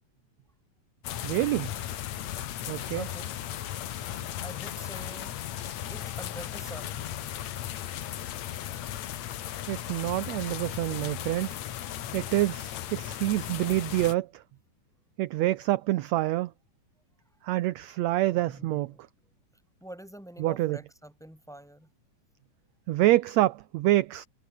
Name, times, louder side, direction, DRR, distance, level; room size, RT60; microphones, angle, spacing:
sound 1, 1.0-14.2, left 11 dB, 65° left, 2.4 m, -36 dB
voice 1, 1.2-1.7 2.7-3.1 9.7-11.5 12.1-14.4 15.2-16.5 17.4-18.9 20.4-20.8 22.9-24.3, right 16 dB, 75° right, 1.7 m, -26 dB
voice 2, 2.9-3.7 4.0-5.4 5.9-7.1 18.3-19.0 19.8-21.9, right 1 dB, ahead, 3.5 m, -46 dB
omnidirectional pair, 3.6 m